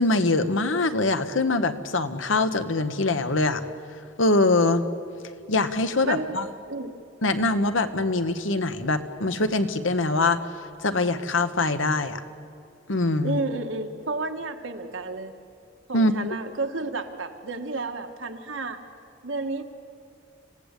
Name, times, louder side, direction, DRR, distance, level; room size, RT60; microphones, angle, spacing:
voice 1, 0.0-3.6 4.2-4.8 5.5-6.5 7.2-10.4 10.8-12.2 12.9-13.4 15.9-16.1, left 2 dB, 90° left, 10 dB, 1.2 m, -23 dB
voice 2, 6.0-6.4 6.7-6.9 13.2-15.3 15.9-18.8 19.2-19.6, right 3 dB, 85° right, 5 dB, 1.6 m, -31 dB
26.5 x 17.0 x 8.3 m, 2.4 s
head